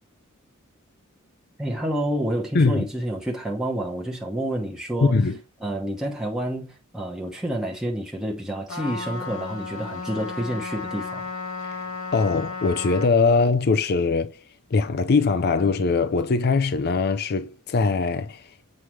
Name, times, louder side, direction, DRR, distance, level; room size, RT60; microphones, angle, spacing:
voice 1, 1.6-5.2 5.6-11.2, right 1 dB, 5° right, 1.0 m, -29 dB
voice 2, 2.5-2.9 5.0-5.4 11.7-11.8 12.1-14.4 14.7-18.5, left 4 dB, 50° left, 0.5 m, -21 dB
Trumpet, 8.7-13.1, left 4 dB, 85° left, 2.4 m, -34 dB
7.7 x 4.8 x 3.1 m
head